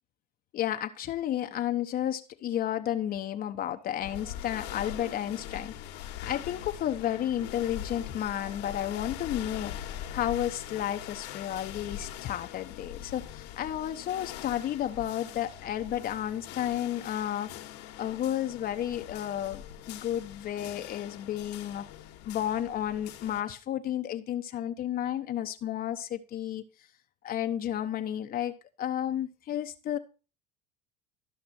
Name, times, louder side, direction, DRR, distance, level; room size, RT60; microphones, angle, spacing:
voice 1, 0.5-5.7 6.2-9.7 10.1-17.5 18.0-21.8 22.2-26.6 27.2-28.5 28.8-30.0, left 11 dB, 45° left, 0.9 m, -32 dB
sound 1, 4.0-23.4, left 11 dB, 85° left, 1.6 m, -42 dB
13.0 x 5.9 x 4.3 m
supercardioid pair, 95°, 20 cm